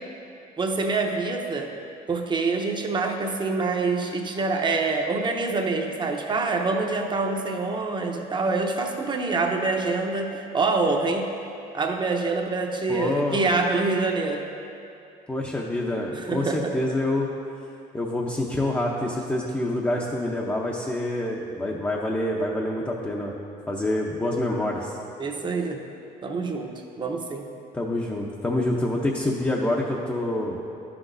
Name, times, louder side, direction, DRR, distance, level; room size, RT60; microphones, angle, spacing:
voice 1, 0.6-1.7 2.1-11.3 11.7-14.5 16.1-16.7 25.2-25.8 26.2-27.5, right 3 dB, 25° right, 3 dB, 0.8 m, -26 dB
voice 2, 12.9-13.4 15.3-17.3 17.9-23.3 23.7-25.0 27.7-30.6, left 1 dB, 10° left, -3 dB, 0.6 m, -26 dB
12.0 x 6.1 x 2.6 m, 2.6 s
cardioid pair, 110°, 17 cm